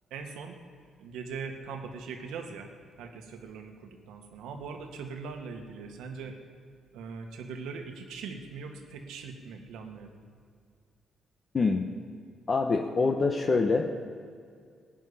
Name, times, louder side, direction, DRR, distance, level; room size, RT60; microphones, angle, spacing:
voice 1, 0.1-0.6 1.0-2.7 3.0-6.4 6.9-10.2, right 5 dB, 90° right, 4 dB, 1.7 m, -41 dB
voice 2, 11.5-11.9 12.5-13.9, left 4 dB, 35° left, 3 dB, 1.0 m, -25 dB
17.5 x 6.4 x 9.9 m, 2.2 s
cardioid pair, 90°, 0 cm